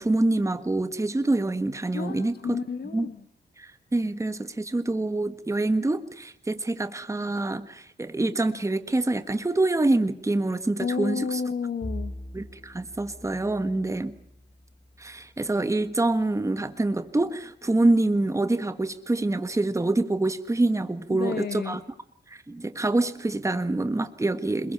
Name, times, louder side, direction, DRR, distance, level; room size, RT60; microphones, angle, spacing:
voice 1, 0.0-2.3 2.9-3.1 3.6-11.4 12.3-14.1 15.0-21.8 22.3-24.7, right 2 dB, 15° right, 10 dB, 1.6 m, -26 dB
voice 2, 1.9-3.2 10.8-12.1 21.1-21.8, left 5 dB, 60° left, 9 dB, 1.8 m, -31 dB
Bowed string instrument, 11.8-16.4, left 1 dB, 15° left, 2.2 m, -42 dB
27.0 x 22.0 x 5.7 m, 0.69 s
cardioid pair, 85°, 18 cm